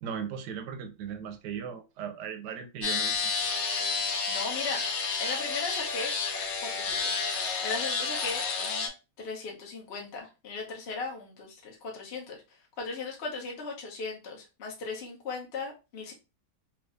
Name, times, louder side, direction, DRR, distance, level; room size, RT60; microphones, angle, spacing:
voice 1, 0.0-3.3, right 7 dB, 75° right, 7 dB, 1.1 m, -37 dB
sound 1, 2.8-8.9, left 5 dB, 75° left, 1.4 m, -30 dB
voice 2, 4.3-4.9 5.2-6.2 6.6-7.2 7.6-8.9 9.2-12.4 12.8-16.1, left 4 dB, 45° left, -2 dB, 1.0 m, -37 dB
3.4 x 3.0 x 2.5 m, 0.29 s
omnidirectional pair, 2.0 m